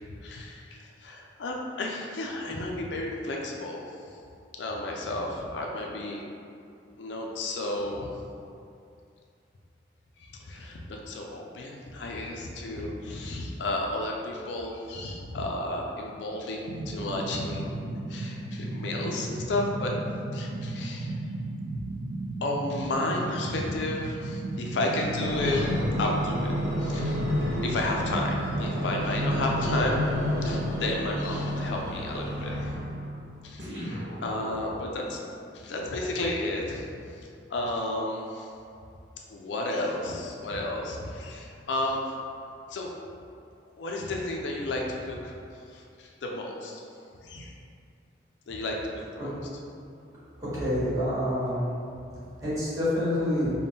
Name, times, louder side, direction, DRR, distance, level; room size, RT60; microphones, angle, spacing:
voice 1, 0.2-3.8 4.6-6.2 7.0-8.2 10.2-17.8 18.1-19.9 20.3-21.2 21.8-21.9 22.4-26.5 26.8-30.0 30.4-32.7 33.4-35.2 35.5-36.9 37.5-38.5 39.3-42.1 42.7-42.9 43.8-45.3 45.7-46.8 47.2-47.5 48.5-48.8 49.1-49.4, left 2 dB, 75° left, 0 dB, 0.4 m, -32 dB
sound 1, 16.7-29.8, right 2 dB, 90° right, 0.3 m, -35 dB
sound 2, 25.0-33.0 33.6-34.9 35.5-35.6, equal, 70° right, 1.0 m, -30 dB
voice 2, 50.4-51.7 52.4-53.5, left 1 dB, 20° right, -13 dB, 1.4 m, -27 dB
3.5 x 2.2 x 4.0 m, 2.5 s
head